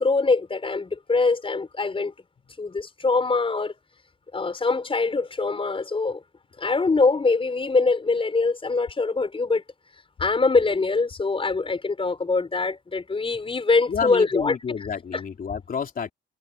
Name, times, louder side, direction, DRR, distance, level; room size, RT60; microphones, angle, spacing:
voice 1, 0.0-2.1 2.6-3.7 4.3-6.2 6.6-9.6 10.2-14.6 15.1-15.2, left 3 dB, 25° left, 5.1 m, -23 dB
voice 2, 13.9-16.1, left 6 dB, 45° left, 3.7 m, -29 dB
cardioid pair, 90°, 20 cm